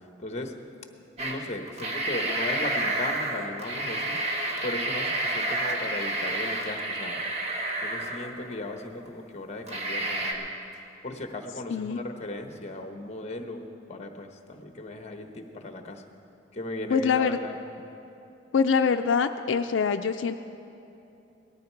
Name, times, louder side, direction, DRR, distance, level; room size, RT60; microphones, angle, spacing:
voice 1, 0.2-0.5 1.2-4.2 4.6-7.2 7.8-10.5 11.0-16.0 16.5-17.6, left 2 dB, 35° left, 5 dB, 1.1 m, -37 dB
sound 1, 1.2-1.4 1.7-8.5 9.0-9.1 9.7-10.3, right 1 dB, 35° right, 1.4 m, -30 dB
voice 2, 16.9-17.4 18.5-20.3, left 6 dB, 85° left, 7 dB, 0.4 m, -24 dB
18.5 x 13.0 x 4.6 m, 2.9 s
head